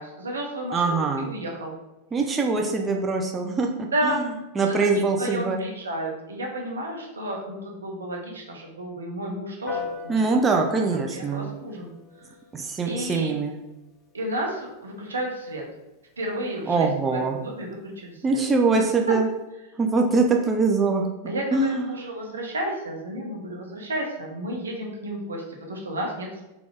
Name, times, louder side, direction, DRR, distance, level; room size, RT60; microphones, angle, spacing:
voice 1, 0.0-1.8 3.9-4.2 4.7-10.4 10.9-11.9 12.2-12.3 12.8-13.3 14.1-15.6 16.2-16.9 17.3-18.4 21.3-26.4, right 1 dB, 70° right, 0 dB, 0.8 m, -32 dB
voice 2, 0.7-1.3 2.1-4.3 4.6-5.6 10.1-11.5 12.5-13.6 16.7-17.4 18.2-19.3 19.8-21.1 21.5-21.9, right 4 dB, 20° right, 2 dB, 0.4 m, -23 dB
Piano, 9.7-19.4, left 5 dB, 20° left, 0.7 m, -44 dB
3.9 x 2.3 x 3.3 m, 0.97 s
figure-of-eight pair, 90°, 0 cm